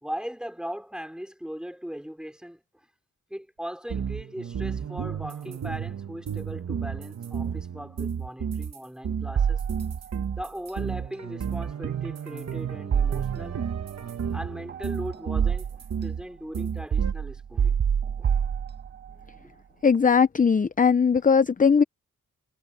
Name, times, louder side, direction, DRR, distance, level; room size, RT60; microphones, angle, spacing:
voice 1, 0.0-2.6 3.3-9.6 10.3-13.6 14.3-17.8 18.2-18.4 19.4-19.5, equal, 5° right, 3.1 m, -39 dB
sound 1, 3.9-8.8 9.0-16.2 16.5-17.1, right 7 dB, 55° right, 1.5 m, -32 dB
sound 2, 9.4-10.2 12.9-13.8 14.7-16.0 16.9-19.1, right 7 dB, 35° right, 0.4 m, -26 dB
voice 2, 19.8-21.8, left 6 dB, 25° left, 0.6 m, -19 dB
cardioid pair, 85°, 31 cm